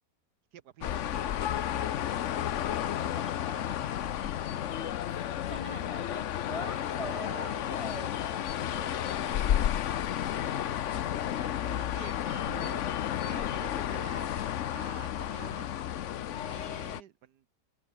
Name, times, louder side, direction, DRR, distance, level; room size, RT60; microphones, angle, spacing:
voice 1, 0.5-5.2 5.7-6.0 7.1-7.5 8.6-9.7 10.1-15.7 16.4-17.4, right 10 dB, 70° right, 1.4 m, -50 dB
sound 1, 0.8-17.0, left 11 dB, 60° left, 0.9 m, -32 dB
voice 2, 2.3-3.8 5.1-8.9 16.1-16.6, equal, 20° left, 1.6 m, -44 dB
sound 2, 4.7-5.0 7.5-9.2 12.0-13.7 14.1-14.2, left 12 dB, 85° left, 1.5 m, -51 dB
omnidirectional pair, 1.9 m